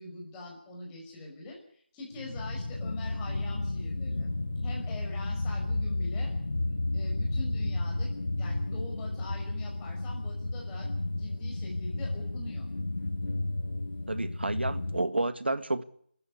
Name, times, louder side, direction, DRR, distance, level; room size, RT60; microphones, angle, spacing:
voice 1, 0.0-1.6 1.9-4.3 4.6-6.3 6.9-8.1 8.4-12.7, left 2 dB, 10° left, 5.5 m, -44 dB
sound 1, 2.1-8.6, left 2 dB, 25° left, 5.1 m, -42 dB
sound 2, 2.4-15.0, left 2 dB, 80° left, 1.0 m, -32 dB
voice 2, 14.1-15.8, right 2 dB, 90° right, 1.9 m, -30 dB
29.0 x 14.0 x 8.2 m
figure-of-eight pair, 170°, 6 cm